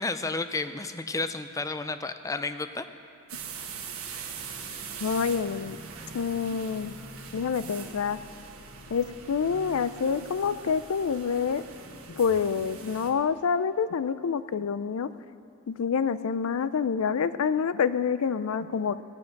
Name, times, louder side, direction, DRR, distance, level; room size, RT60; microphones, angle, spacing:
voice 1, 0.0-2.9, left 3 dB, 15° left, 10 dB, 0.4 m, -31 dB
sound 1, 3.3-13.1, right 5 dB, 75° right, 1.4 m, -42 dB
voice 2, 5.0-5.8 6.1-7.0 7.3-8.2 8.9-11.6 12.1-15.1 15.7-19.0, left 6 dB, 90° left, 14 dB, 0.4 m, -27 dB
17.5 x 7.7 x 5.9 m, 2.5 s
head